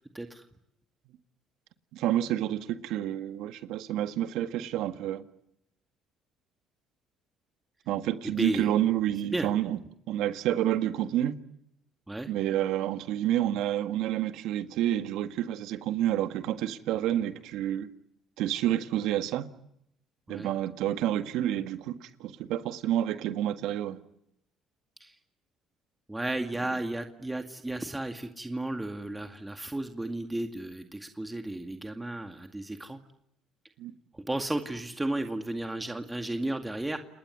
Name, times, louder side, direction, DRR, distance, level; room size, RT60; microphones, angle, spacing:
voice 1, 1.9-5.2 7.9-9.8 10.1-11.3 12.3-17.9 18.4-19.5 20.3-24.0 33.8-33.9, right 12 dB, 75° right, 1.7 m, -29 dB
voice 2, 8.4-8.7 9.2-9.5 12.1-12.3 20.3-20.5 25.0-25.1 26.1-33.0 34.3-37.0, right 1 dB, 10° right, 2.1 m, -33 dB
30.0 x 19.5 x 9.8 m
supercardioid pair, 80°, 0 cm